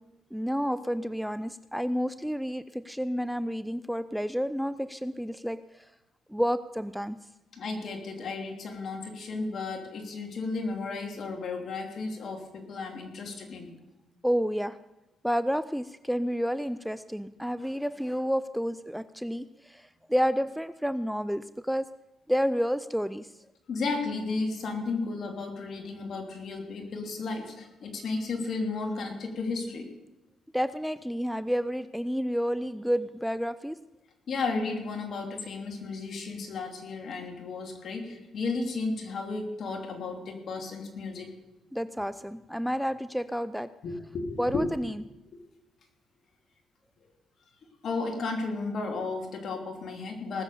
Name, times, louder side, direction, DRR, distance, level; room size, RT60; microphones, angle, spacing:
voice 1, 0.3-5.9 6.3-7.2 14.2-14.8 15.2-22.0 22.3-23.3 30.5-33.8 41.7-43.7 44.4-45.0, equal, ahead, 13 dB, 0.4 m, -30 dB
voice 2, 7.5-13.7 23.7-29.9 34.3-41.3 43.8-44.6 45.3-45.4 47.8-50.4, left 3 dB, 60° left, 3 dB, 2.9 m, -33 dB
19.5 x 7.1 x 6.8 m, 0.97 s
cardioid pair, 90°, 0 cm